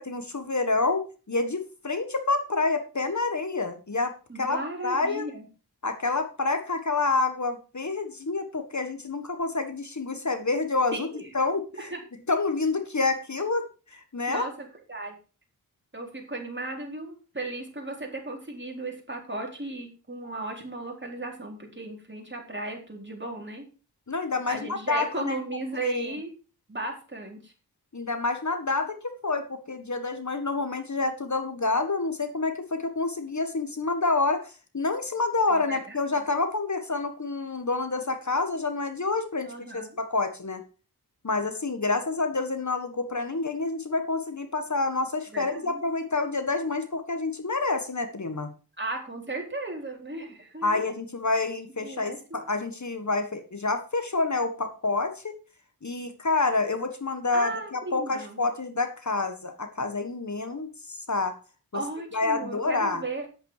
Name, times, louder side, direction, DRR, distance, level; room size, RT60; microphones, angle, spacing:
voice 1, 0.0-5.3 5.8-11.1 11.3-11.9 12.3-13.7 13.9-14.5 24.1-25.4 25.8-26.1 27.9-29.0 29.2-40.6 41.2-48.5 50.6-55.3 55.8-61.4 62.1-63.0, left 3 dB, 45° left, 8 dB, 1.6 m, -28 dB
voice 2, 4.3-5.5 10.9-11.3 11.7-12.0 14.3-15.1 15.9-23.6 24.5-26.3 26.7-27.5 35.5-36.0 39.4-40.0 45.3-45.8 48.8-50.8 51.8-52.2 57.3-58.4 61.7-63.3, right 2 dB, 30° right, 1 dB, 4.2 m, -36 dB
9.9 x 8.5 x 4.9 m, 0.34 s
cardioid pair, 50°, 39 cm